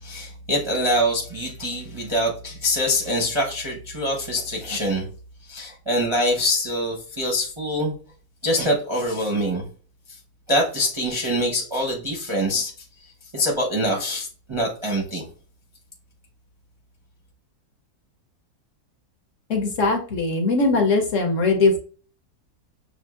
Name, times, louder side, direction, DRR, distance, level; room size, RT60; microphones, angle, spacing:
voice 1, 0.0-5.0 5.5-7.9 8.4-9.7 10.1-10.2 10.5-12.7 13.3-15.3, equal, 30° right, -2 dB, 0.5 m, -24 dB
voice 2, 19.5-21.8, left 3 dB, 60° left, 3 dB, 1.0 m, -20 dB
6.5 x 2.5 x 2.4 m, 0.40 s
omnidirectional pair, 1.8 m